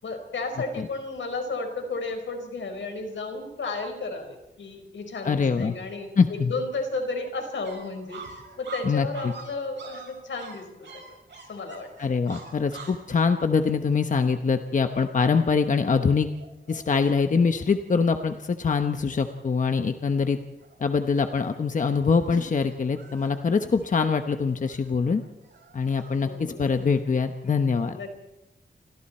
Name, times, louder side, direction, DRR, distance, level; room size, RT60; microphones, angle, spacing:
voice 1, 0.0-11.2 11.5-11.9 26.2-26.7 27.9-28.1, left 3 dB, 85° left, 5 dB, 4.8 m, -33 dB
voice 2, 5.2-5.7 6.2-6.5 8.8-9.3 12.0-16.3 16.7-20.4 20.8-25.2 25.7-28.0, left 5 dB, 45° left, 7 dB, 1.0 m, -24 dB
sound 1, 7.6-17.1 17.5-17.6 17.9-18.5 18.8-19.5 19.9-20.2 20.6-27.1, right 4 dB, 75° right, 6.6 m, -47 dB
29.0 x 26.0 x 4.4 m, 0.95 s
wide cardioid pair, 170°, 19 cm